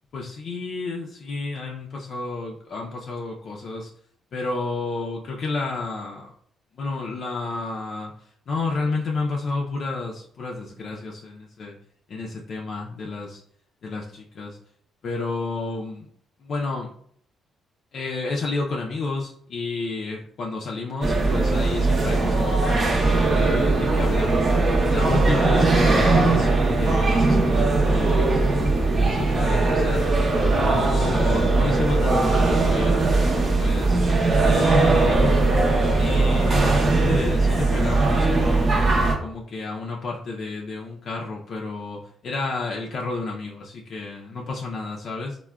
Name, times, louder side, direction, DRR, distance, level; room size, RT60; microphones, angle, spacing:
voice 1, 0.1-3.9 4.3-6.3 6.7-8.1 8.5-11.8 12.1-13.4 13.8-14.6 15.0-16.1 16.4-16.9 17.9-22.8 23.2-24.4 24.9-30.1 30.5-34.0 34.3-35.5 36.0-45.4, left 3 dB, 60° left, -2 dB, 0.4 m, -31 dB
sound 1, 21.0-39.2, right 3 dB, 40° right, 0.6 m, -20 dB
3.3 x 2.1 x 2.2 m, 0.63 s
cardioid pair, 90°, 0 cm